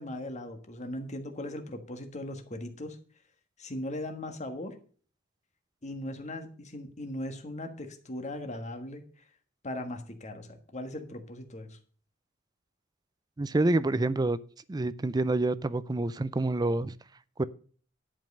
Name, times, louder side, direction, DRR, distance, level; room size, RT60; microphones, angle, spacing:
voice 1, 0.0-3.0 3.6-4.7 5.8-9.0 9.6-11.8, left 1 dB, 35° left, 1.5 m, -38 dB
voice 2, 13.4-14.4 14.7-16.9 17.4-17.5, right 2 dB, 20° right, 0.4 m, -27 dB
10.5 x 5.4 x 6.5 m
head